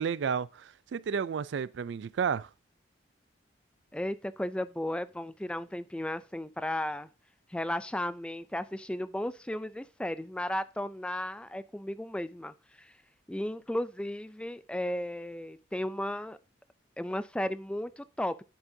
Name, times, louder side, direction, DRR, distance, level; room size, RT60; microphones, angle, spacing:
voice 1, 0.0-2.5, right 6 dB, 70° right, 0.4 m, -32 dB
voice 2, 3.9-7.1 7.5-12.9 13.3-16.4 17.0-18.4, left 1 dB, 5° left, 0.3 m, -34 dB
11.0 x 7.3 x 2.7 m
head